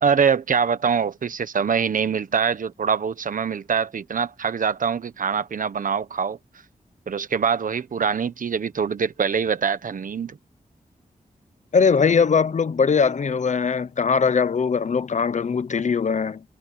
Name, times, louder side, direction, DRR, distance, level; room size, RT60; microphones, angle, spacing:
voice 1, 0.0-6.4 7.1-10.4, right 6 dB, 65° right, 1.1 m, -24 dB
voice 2, 11.7-16.4, left 5 dB, 55° left, 0.9 m, -21 dB
wide cardioid pair, 110°, 15 cm